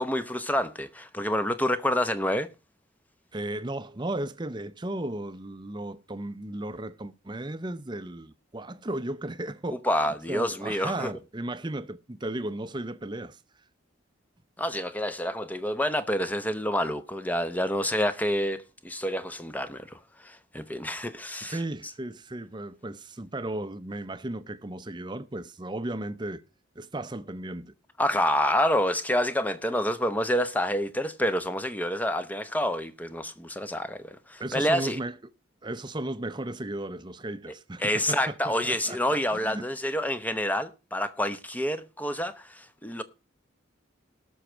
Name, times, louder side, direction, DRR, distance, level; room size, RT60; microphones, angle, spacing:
voice 1, 0.0-2.5 9.7-11.1 14.6-21.6 28.0-35.0 37.8-43.0, left 1 dB, 10° left, 0.8 m, -28 dB
voice 2, 3.3-13.4 21.4-26.4 26.8-27.7 34.4-35.2 35.6-39.7, right 1 dB, 25° right, 0.7 m, -35 dB
18.5 x 6.4 x 4.4 m
head